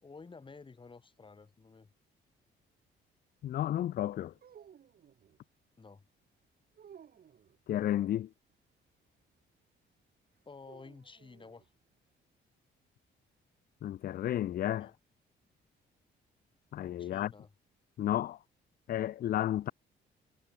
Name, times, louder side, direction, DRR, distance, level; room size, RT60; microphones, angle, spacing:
voice 1, 0.0-1.9 5.8-6.0 10.4-11.7 14.8-14.9 17.0-17.5, left 4 dB, 25° left, 1.5 m, -52 dB
voice 2, 3.4-4.3 7.7-8.3 13.8-14.9 16.7-17.3 18.0-18.4 18.9-19.7, left 12 dB, 50° left, 0.4 m, -32 dB
sound 1, 4.3-5.4 6.7-7.6 10.6-11.7, right 8 dB, 50° right, 1.3 m, -57 dB
cardioid pair, 90°, 20 cm